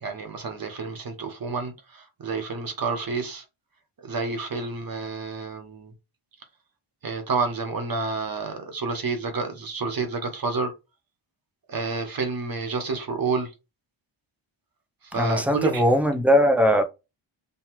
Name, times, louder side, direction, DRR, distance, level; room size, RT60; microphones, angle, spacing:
voice 1, 0.0-3.4 4.0-5.9 7.0-10.7 11.7-13.5 15.1-15.8, right 4 dB, 45° right, 1.0 m, -29 dB
voice 2, 15.1-16.8, equal, 5° right, 0.4 m, -20 dB
5.5 x 2.3 x 3.0 m
wide cardioid pair, 135°, 50 cm